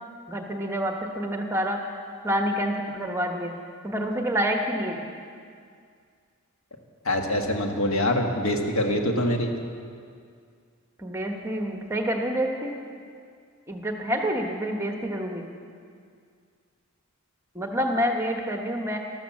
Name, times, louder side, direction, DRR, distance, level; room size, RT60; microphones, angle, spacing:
voice 1, 0.3-3.5 3.8-5.0 11.0-12.7 13.7-15.4 17.5-19.0, equal, 15° right, 3 dB, 1.2 m, -28 dB
voice 2, 7.0-9.5, left 1 dB, 80° left, 3 dB, 1.6 m, -24 dB
13.0 x 13.0 x 7.3 m, 2.2 s
head